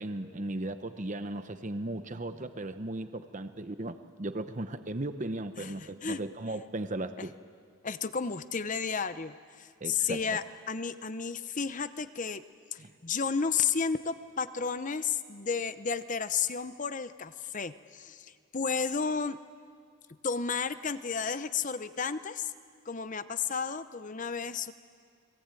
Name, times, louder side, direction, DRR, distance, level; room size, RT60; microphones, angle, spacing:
voice 1, 0.0-7.3 9.8-10.4 12.8-12.9, right 1 dB, 35° right, 9 dB, 0.9 m, -36 dB
voice 2, 5.6-6.2 7.2-7.3 7.8-12.4 12.7-19.4 20.2-22.5 22.9-24.7, left 5 dB, 35° left, 12 dB, 0.8 m, -32 dB
30.0 x 22.0 x 9.1 m, 2.2 s
head